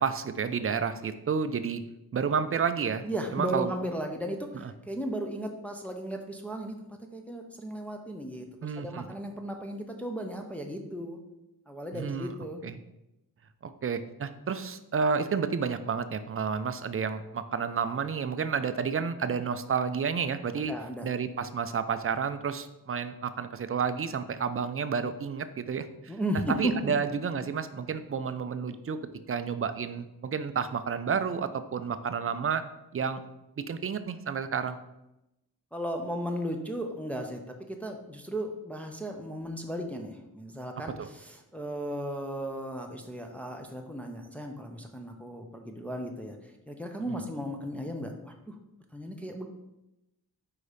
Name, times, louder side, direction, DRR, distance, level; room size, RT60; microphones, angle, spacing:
voice 1, 0.0-1.8 2.1-3.0 3.3-3.7 8.6-9.0 11.9-12.3 12.6-12.7 13.6-20.7 21.0-26.1 26.6-29.0 29.3-32.6 32.9-33.2 33.6-34.8 41.0-41.1 47.1-47.2, right 6 dB, 35° right, 11 dB, 0.4 m, -30 dB
voice 2, 3.0-11.2 11.7-12.6 20.6-21.1 26.1-26.9 35.7-48.6 48.9-49.5, right 1 dB, 5° left, 2 dB, 0.6 m, -35 dB
4.8 x 4.1 x 5.0 m, 0.91 s
wide cardioid pair, 105°, 39 cm